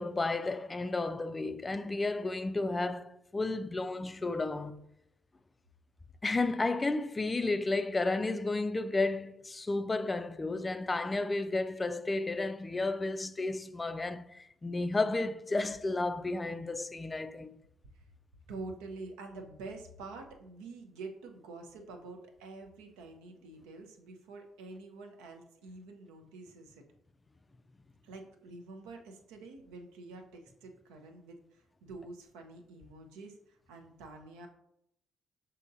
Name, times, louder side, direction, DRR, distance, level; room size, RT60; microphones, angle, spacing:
voice 1, 0.0-4.8 6.2-17.6, left 2 dB, 25° left, 0.3 m, -32 dB
voice 2, 18.5-26.8 28.0-34.5, right 3 dB, 70° right, 0.5 m, -47 dB
6.3 x 2.7 x 2.6 m
figure-of-eight pair, 45°, 0 cm